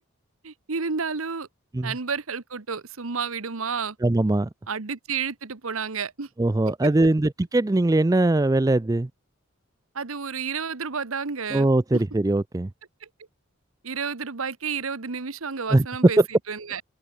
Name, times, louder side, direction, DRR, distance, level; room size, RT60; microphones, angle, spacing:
voice 1, 0.4-1.5 1.8-4.0 4.7-6.3 6.8-6.9 9.9-11.7 11.9-12.0 13.0-13.1 13.8-16.2 16.5-16.8, right 5 dB, 85° right, 1.2 m, -30 dB
voice 2, 4.0-4.5 6.4-9.1 11.5-12.7 15.7-16.2, right 2 dB, 15° right, 0.4 m, -21 dB
open air
head